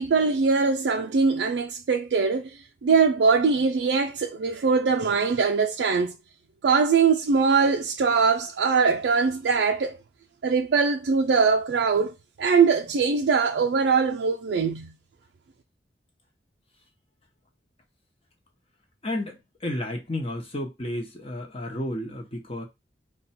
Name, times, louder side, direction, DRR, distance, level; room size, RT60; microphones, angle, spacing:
voice 1, 0.0-6.1 6.6-10.0 10.4-14.9, right 5 dB, 85° right, 0.4 m, -22 dB
voice 2, 19.0-22.6, left 1 dB, 35° left, 1.0 m, -32 dB
4.1 x 2.3 x 4.2 m
head